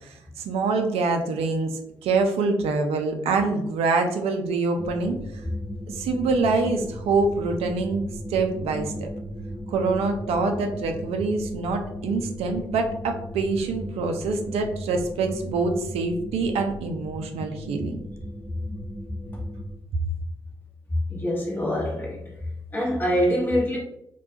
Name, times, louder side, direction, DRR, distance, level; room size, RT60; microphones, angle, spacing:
voice 1, 0.0-5.2 5.9-9.1 9.7-18.0, right 3 dB, 70° right, 5 dB, 0.4 m, -25 dB
sound 1, 4.8-19.7, equal, 5° right, 0.4 m, -36 dB
voice 2, 21.1-22.2 22.7-23.8, equal, 20° left, -5 dB, 0.9 m, -24 dB
2.2 x 2.2 x 2.6 m, 0.80 s
hypercardioid pair, 40°, 11 cm